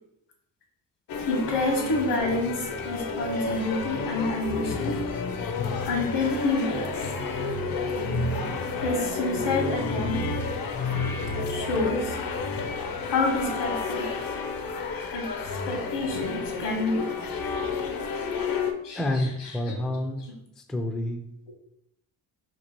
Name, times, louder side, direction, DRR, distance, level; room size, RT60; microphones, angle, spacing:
sound 1, 1.1-18.7, left 4 dB, 55° left, 0.6 m, -30 dB
voice 1, 1.2-5.1 5.9-7.0 8.8-10.3 11.5-12.2 13.1-14.1 15.1-15.3 15.6-17.1 18.8-19.7, left 2 dB, 70° left, 1 dB, 1.2 m, -28 dB
voice 2, 19.0-20.2 20.7-21.2, left 1 dB, ahead, 4 dB, 0.3 m, -28 dB
2.9 x 2.5 x 4.3 m, 0.79 s
cardioid pair, 70°, 43 cm